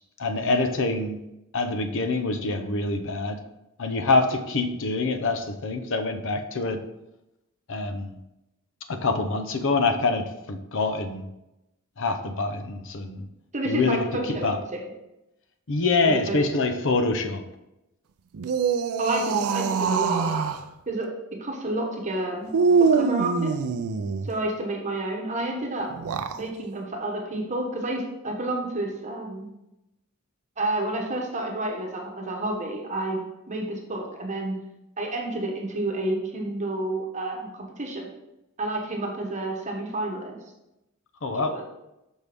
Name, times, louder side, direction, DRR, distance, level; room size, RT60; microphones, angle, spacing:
voice 1, 0.2-1.2 1.5-3.4 3.8-6.8 7.7-8.2 8.9-11.2 12.0-13.2 13.7-14.6 15.7-17.4 41.2-41.5, left 3 dB, 60° left, 7 dB, 0.7 m, -25 dB
voice 2, 13.5-14.8 16.0-16.4 19.0-20.4 20.9-21.1 21.4-22.5 22.9-23.5 24.2-26.1 26.4-29.5 30.6-34.6 35.0-38.1 38.6-40.4 41.4-41.6, right 2 dB, 35° right, 0 dB, 1.1 m, -30 dB
sound 1, 18.3-20.6 22.5-24.3 25.9-26.4, right 5 dB, 85° right, 0.5 m, -24 dB
6.2 x 5.5 x 3.5 m, 0.91 s
head